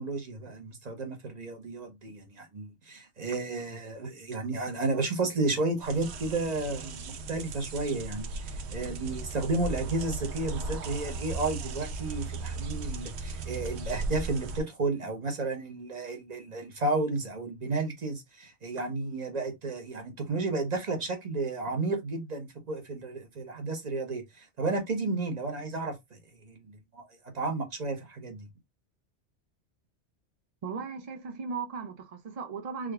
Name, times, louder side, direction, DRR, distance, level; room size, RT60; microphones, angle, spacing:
voice 1, 0.0-26.2 26.4-27.1 27.3-28.4, right 3 dB, 40° right, 0.9 m, -32 dB
sound 1, 5.8-14.6, right 3 dB, 70° right, 0.9 m, -37 dB
voice 2, 30.6-32.9, right 5 dB, 55° right, 0.4 m, -37 dB
3.6 x 2.3 x 3.2 m
omnidirectional pair, 1.2 m